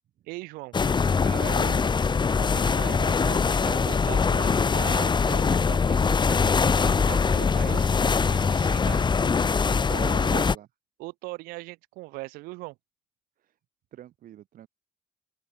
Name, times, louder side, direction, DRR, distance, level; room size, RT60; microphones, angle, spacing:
voice 1, 0.3-0.7 1.2-6.6 6.8-7.9 8.2-9.4 9.9-10.4 11.0-12.8, right 23 dB, 90° right, 7.4 m, -40 dB
sound 1, 0.7-10.6, left 5 dB, 30° left, 0.8 m, -23 dB
voice 2, 10.0-10.7 13.4-13.5 13.9-14.7, right 12 dB, 70° right, 5.6 m, -47 dB
open air
supercardioid pair, 60°, 15 cm